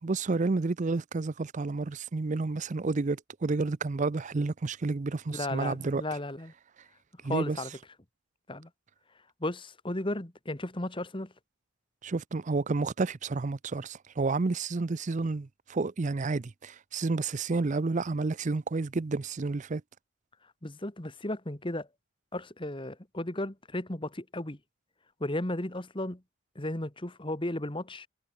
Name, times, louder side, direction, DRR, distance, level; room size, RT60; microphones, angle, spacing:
voice 1, 0.0-6.0 7.2-7.6 12.0-19.8, right 3 dB, 35° right, 0.5 m, -30 dB
voice 2, 5.3-6.5 7.2-7.7 8.5-8.7 9.4-11.3 20.6-21.9 22.3-24.6 25.2-26.2 26.5-28.1, left 1 dB, 25° left, 1.6 m, -34 dB
head